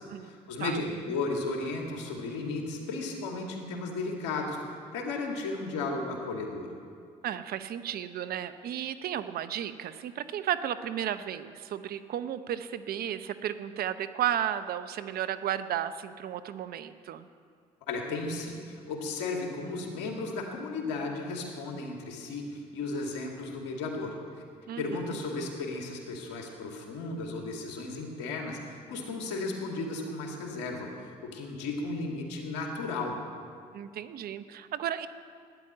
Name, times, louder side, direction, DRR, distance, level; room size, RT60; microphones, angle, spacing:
voice 1, 0.2-4.6 4.9-6.7 17.9-24.2 24.8-30.9 31.3-33.2, left 3 dB, 85° left, 1 dB, 2.3 m, -34 dB
voice 2, 7.2-17.3 24.7-24.8 33.7-35.1, right 10 dB, 65° right, 12 dB, 0.8 m, -33 dB
13.0 x 10.0 x 8.8 m, 2.2 s
supercardioid pair, 60°, 17 cm